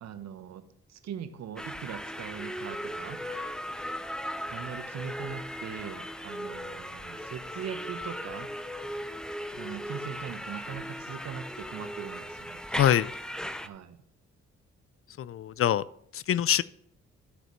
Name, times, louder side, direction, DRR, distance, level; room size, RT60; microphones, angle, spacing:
voice 1, 0.0-3.2 4.5-8.5 9.5-12.6 13.6-14.0, right 8 dB, 65° right, 10 dB, 1.1 m, -41 dB
sound 1, 1.6-13.7, equal, ahead, 0.8 m, -37 dB
voice 2, 12.7-13.1 15.2-15.8 16.1-16.6, left 10 dB, 50° left, 19 dB, 0.4 m, -24 dB
13.0 x 7.9 x 3.2 m, 0.70 s
supercardioid pair, 50°, 29 cm